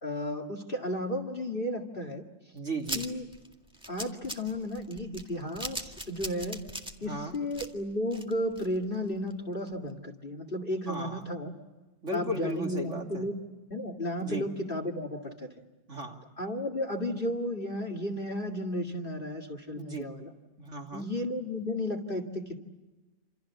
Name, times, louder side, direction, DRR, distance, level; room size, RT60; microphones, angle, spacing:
voice 1, 0.0-2.2 2.9-3.2 3.9-6.6 7.0-11.5 12.1-13.4 13.7-15.5 16.4-20.3 20.9-22.6, left 1 dB, 30° left, 5 dB, 2.2 m, -33 dB
voice 2, 2.5-3.0 7.0-7.4 10.9-11.2 12.0-13.3 14.2-14.5 15.9-16.2 19.7-20.1 20.6-21.1, right 1 dB, 40° right, 1 dB, 3.1 m, -36 dB
sound 1, 2.8-8.9 9.3-9.4 9.7-9.8, equal, 5° right, 1.7 m, -40 dB
28.0 x 27.5 x 7.2 m, 1.1 s
omnidirectional pair, 2.0 m